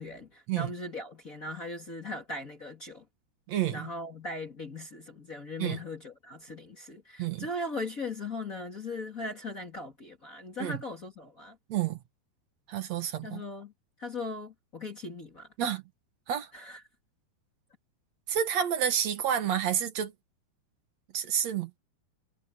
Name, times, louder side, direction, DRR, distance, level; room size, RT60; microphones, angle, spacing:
voice 1, 0.0-3.0 3.7-11.6 13.2-13.7 14.0-15.5 16.5-16.8, left 2 dB, 30° left, 1.8 m, -39 dB
voice 2, 3.5-3.9 5.6-5.8 7.2-7.5 10.6-10.8 11.7-12.0 12.7-13.4 15.6-15.8 16.3-16.5 18.3-20.1 21.1-21.8, right 9 dB, 60° right, 1.9 m, -29 dB
omnidirectional pair, 4.7 m